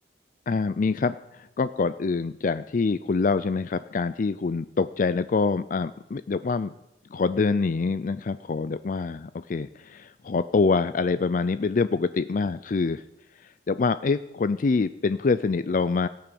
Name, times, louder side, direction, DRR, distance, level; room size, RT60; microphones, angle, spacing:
voice 1, 0.5-6.7 7.1-13.0 13.4-16.1, left 4 dB, 45° left, 14 dB, 0.4 m, -25 dB
16.5 x 9.0 x 6.9 m, 0.89 s
head